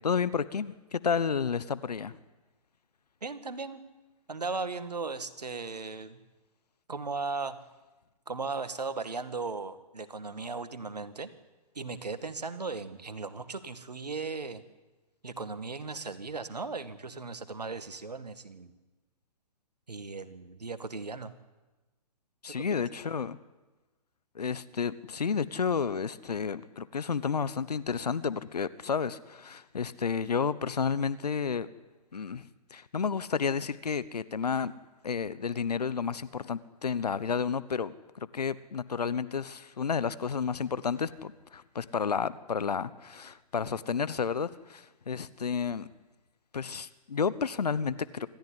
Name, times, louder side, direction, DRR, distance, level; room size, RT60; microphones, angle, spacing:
voice 1, 0.0-2.1 22.4-23.4 24.3-31.7 32.1-34.7 35.0-45.9 46.5-48.3, left 6 dB, 80° left, 17 dB, 1.1 m, -31 dB
voice 2, 3.2-3.8 4.3-6.2 6.9-7.6 8.3-11.3 11.8-14.6 15.2-18.7 19.9-21.3 22.5-22.8, right 4 dB, 90° right, 12 dB, 2.0 m, -37 dB
26.5 x 14.5 x 9.9 m, 1.2 s
hypercardioid pair, 130°, 20 cm